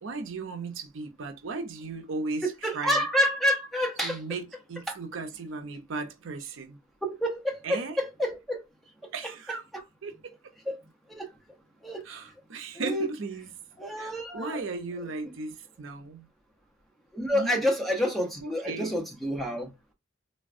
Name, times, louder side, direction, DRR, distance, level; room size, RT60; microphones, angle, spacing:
voice 1, 0.0-3.0 4.0-6.8 7.6-8.0 9.1-9.6 10.0-10.5 12.0-13.5 14.0-16.3 17.3-17.6 18.4-19.0, right 3 dB, 70° right, 0.5 m, -36 dB
voice 2, 2.6-4.2 4.9-5.0 7.1-8.6 9.7-9.8 10.7-10.8 11.1-11.3 11.8-12.0 12.7-13.1 13.8-14.6 17.1-19.7, equal, ahead, 0.6 m, -28 dB
3.4 x 2.1 x 2.4 m
head